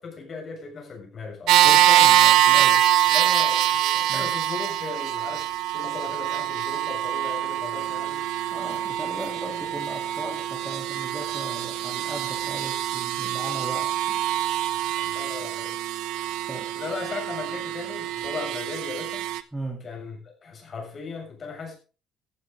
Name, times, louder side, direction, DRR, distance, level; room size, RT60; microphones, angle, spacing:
voice 1, 0.0-1.7 3.1-8.2 14.7-15.8 16.7-19.3 19.8-21.8, left 4 dB, 30° left, 1 dB, 6.8 m, -37 dB
sound 1, 1.5-19.4, right 13 dB, 65° right, 1.0 m, -24 dB
voice 2, 1.6-2.8 4.1-4.3 8.5-14.2 16.5-16.7 19.5-19.8, right 1 dB, 5° right, -1 dB, 3.2 m, -37 dB
15.0 x 13.0 x 3.8 m, 0.35 s
cardioid pair, 165°, 0 cm